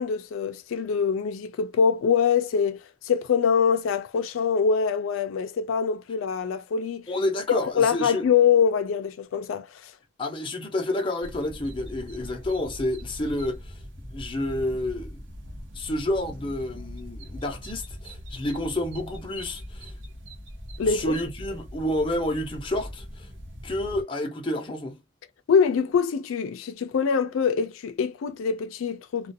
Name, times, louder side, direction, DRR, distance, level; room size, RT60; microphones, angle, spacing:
voice 1, 0.0-2.8 3.0-7.1 7.5-9.9 20.8-21.2 25.5-29.3, left 6 dB, 90° left, 0.4 m, -24 dB
voice 2, 7.1-8.2 10.2-13.8 14.1-15.2 15.7-19.9 20.8-23.3 23.6-25.0, left 1 dB, 25° left, 0.6 m, -29 dB
sound 1, 11.2-24.0, equal, 65° right, 0.8 m, -41 dB
2.4 x 2.2 x 2.6 m
head